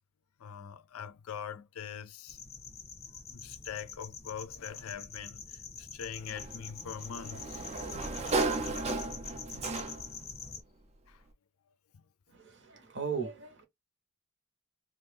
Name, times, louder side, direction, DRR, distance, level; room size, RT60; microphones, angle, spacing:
voice 1, 0.4-2.4 3.3-7.6 11.1-11.2 11.9-12.0, left 8 dB, 75° left, 0.4 m, -43 dB
sound 1, 2.3-10.6, left 6 dB, 30° left, 0.7 m, -45 dB
Sliding door, 6.3-10.2, right 3 dB, 30° right, 0.4 m, -34 dB
voice 2, 12.3-13.6, right 6 dB, 55° right, 1.0 m, -37 dB
2.7 x 2.4 x 3.4 m
head